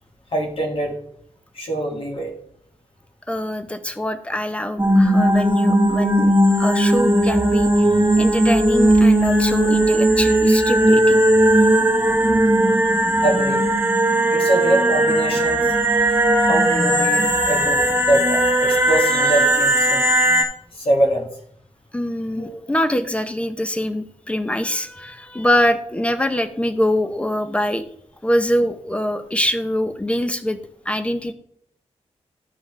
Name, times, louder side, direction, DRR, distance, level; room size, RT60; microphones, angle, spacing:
voice 1, 0.3-1.0 1.5-2.3 6.8-6.9 13.2-13.7 14.3-15.7 16.4-20.0 20.7-21.3 22.3-22.6, right 1 dB, 50° left, 1 dB, 1.7 m, -23 dB
voice 2, 3.3-11.3 11.6-11.7 16.0-16.1 18.7-18.8 21.9-27.8 28.2-30.6 30.9-31.3, left 1 dB, 10° left, 10 dB, 0.6 m, -24 dB
sound 1, 4.8-20.4, right 1 dB, 15° right, 1.6 m, -17 dB
12.5 x 5.4 x 3.2 m, 0.66 s
wide cardioid pair, 135°, 12 cm